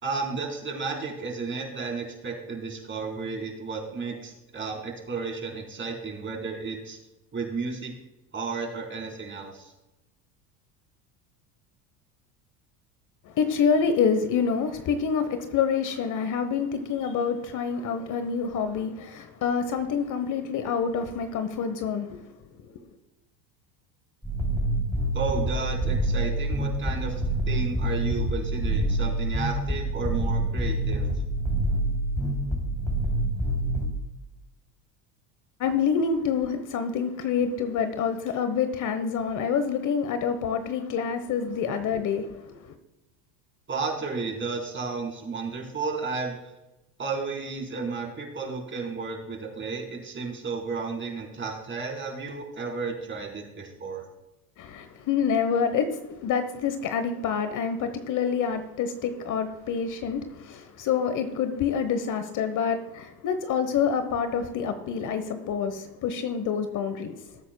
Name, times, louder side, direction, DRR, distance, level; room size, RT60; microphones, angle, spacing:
voice 1, 0.0-7.0 7.3-7.9 8.3-9.7 25.1-31.1 43.7-46.4 47.0-54.0, right 4 dB, 25° right, 4.0 m, -33 dB
voice 2, 13.2-22.2 22.6-22.7 35.6-42.7 54.6-67.4, left 6 dB, 40° left, 1.1 m, -27 dB
sound 1, 24.2-33.9, right 1 dB, 5° left, 3.0 m, -26 dB
20.0 x 8.4 x 2.2 m
hypercardioid pair, 90°, 45 cm